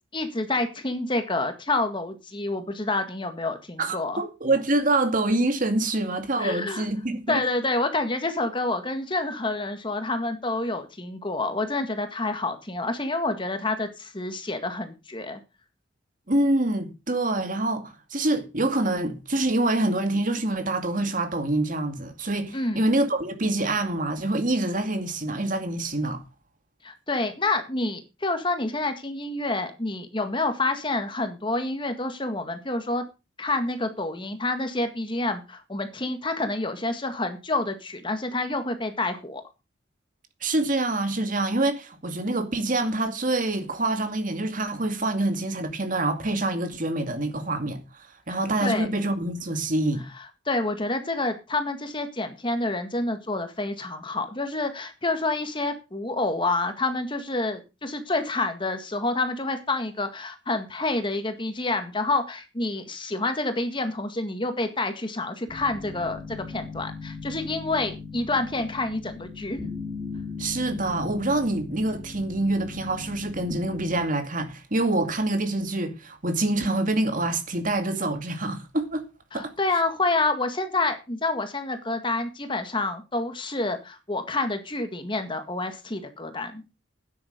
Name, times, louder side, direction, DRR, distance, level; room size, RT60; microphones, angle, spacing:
voice 1, 0.1-4.2 6.4-6.9 7.3-15.4 22.5-22.8 26.8-33.0 33.4-39.4 48.3-48.9 50.5-69.7 79.3-86.6, left 2 dB, 25° left, 1.8 m, -28 dB
voice 2, 3.8-7.4 16.3-26.2 40.4-50.0 70.4-79.1 79.3-79.5, right 2 dB, 45° right, 2.3 m, -26 dB
sound 1, 65.5-74.0, left 4 dB, 15° right, 3.1 m, -39 dB
12.5 x 9.7 x 5.1 m
head